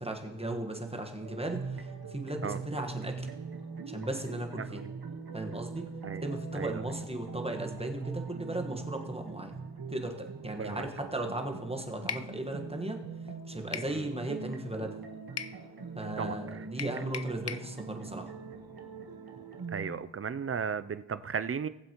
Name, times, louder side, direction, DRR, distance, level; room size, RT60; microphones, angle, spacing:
voice 1, 0.0-3.3 3.9-4.8 5.3-5.9 6.2-9.6 9.9-13.0 13.5-15.0 15.9-18.3, right 1 dB, 10° right, 3 dB, 1.3 m, -36 dB
sound 1, 1.2-19.9, right 4 dB, 50° right, 1.3 m, -42 dB
voice 2, 4.6-4.9 6.0-6.3 6.6-6.8 10.6-10.9 13.9-14.1 16.2-16.4 19.7-21.7, right 6 dB, 30° right, 14 dB, 0.4 m, -35 dB
sound 2, 12.1-12.3 13.7-14.0 15.4-15.6 16.8-17.7, left 7 dB, 35° left, 0.4 m, -37 dB
19.0 x 7.6 x 3.0 m, 1.0 s
cardioid pair, 75°, 48 cm